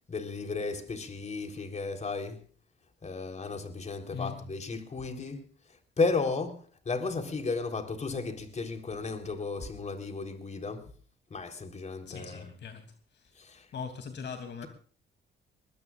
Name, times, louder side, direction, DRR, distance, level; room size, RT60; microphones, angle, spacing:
voice 1, 0.1-2.4 3.0-5.5 6.0-10.9 11.3-12.5 13.4-13.7, left 4 dB, 35° left, 3.7 m, -34 dB
voice 2, 4.1-4.5 12.1-12.8 13.1-14.7, left 6 dB, 60° left, 2.9 m, -41 dB
21.5 x 20.5 x 2.5 m
cardioid pair, 90°, 20 cm